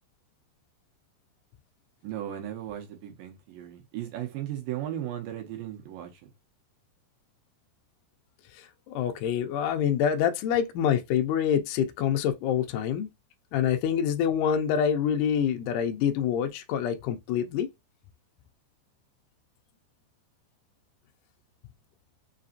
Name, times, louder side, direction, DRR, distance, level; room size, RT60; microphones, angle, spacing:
voice 1, 2.0-6.3, right 11 dB, 75° right, 2.3 m, -36 dB
voice 2, 8.9-13.1 13.5-17.7, left 8 dB, 85° left, 1.8 m, -26 dB
5.7 x 2.6 x 2.5 m
omnidirectional pair, 4.3 m